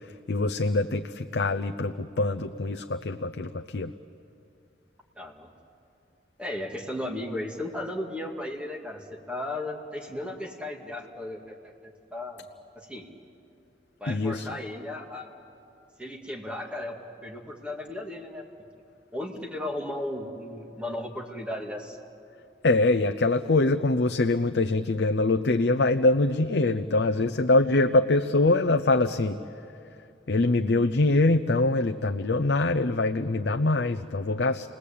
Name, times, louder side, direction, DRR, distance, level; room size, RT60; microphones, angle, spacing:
voice 1, 0.3-3.9 14.1-14.5 22.6-29.4 30.3-34.7, left 2 dB, 75° left, 7 dB, 0.7 m, -24 dB
voice 2, 5.2-5.5 6.4-12.5 12.7-13.1 14.0-15.3 16.0-17.0 17.2-18.4 19.1-22.0, left 1 dB, 5° right, 0 dB, 2.2 m, -35 dB
30.0 x 20.0 x 8.5 m, 2.6 s
head